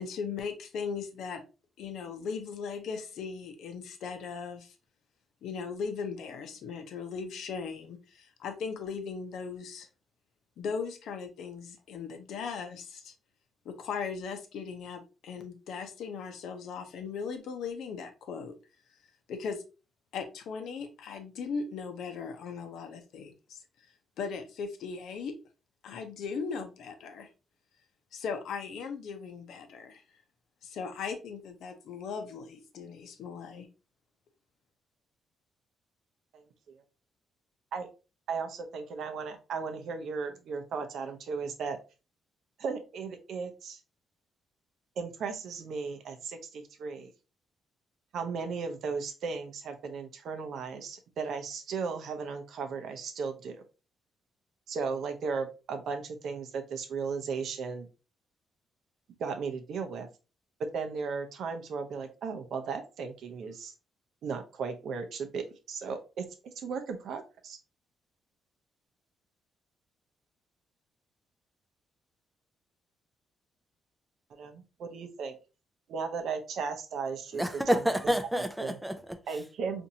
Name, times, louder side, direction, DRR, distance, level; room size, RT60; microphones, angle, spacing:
voice 1, 0.0-1.4 1.8-4.7 5.4-9.9 10.6-13.1 13.6-18.5 19.3-19.6 20.1-23.6 24.2-25.3 25.8-27.3 28.1-30.0 30.6-33.7, left 5 dB, 75° left, 0.7 m, -38 dB
voice 2, 36.3-36.8 37.7-37.9 38.3-41.8 42.6-43.8 45.0-47.1 48.1-53.6 54.7-57.9 59.2-60.1 60.7-63.7 64.2-67.6 74.3-75.4 75.9-77.4 78.6-78.7 79.3-79.9, right 5 dB, 65° right, 0.6 m, -36 dB
voice 3, 77.3-79.4, equal, 5° right, 0.4 m, -29 dB
4.3 x 2.6 x 2.7 m
cardioid pair, 130°, 0 cm